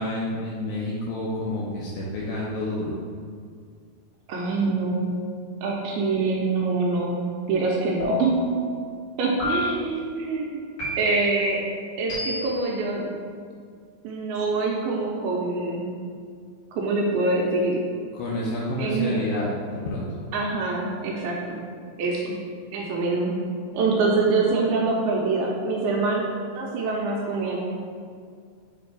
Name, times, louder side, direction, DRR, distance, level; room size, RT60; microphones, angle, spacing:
voice 1, 0.0-3.0 18.1-19.5 19.9-20.2, left 1 dB, 80° left, -5 dB, 2.2 m, -29 dB
voice 2, 4.3-5.1 5.6-7.2 7.5-8.4 9.2-10.5 11.0-11.6 12.0-13.1 14.0-15.8 16.7-17.8 18.8-19.2 20.3-21.6 22.0-22.4 22.7-23.3 23.7-26.3 26.5-27.6, right 3 dB, 80° right, -2 dB, 2.3 m, -25 dB
sound 1, 8.0-8.6 9.4-10.0 10.8-11.4 12.1-12.7, left 2 dB, 50° left, 1.9 m, -30 dB
7.1 x 3.4 x 4.6 m, 2.1 s
omnidirectional pair, 4.9 m